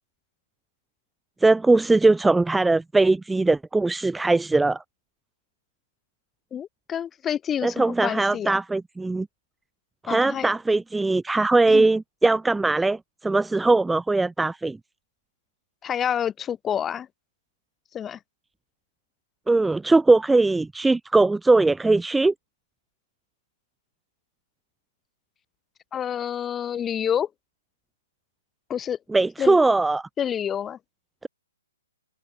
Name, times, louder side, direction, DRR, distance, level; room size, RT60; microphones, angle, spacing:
voice 1, 1.4-4.8 7.6-9.3 10.0-14.8 19.5-22.3 29.1-30.1, right 3 dB, 5° right, 4.5 m, -20 dB
voice 2, 6.5-8.6 10.1-10.5 11.7-11.9 15.8-17.1 17.9-18.2 25.9-27.3 28.7-29.0 29.4-29.6 30.2-30.8, left 9 dB, 10° left, 7.7 m, -28 dB
hypercardioid pair, 160°, 0 cm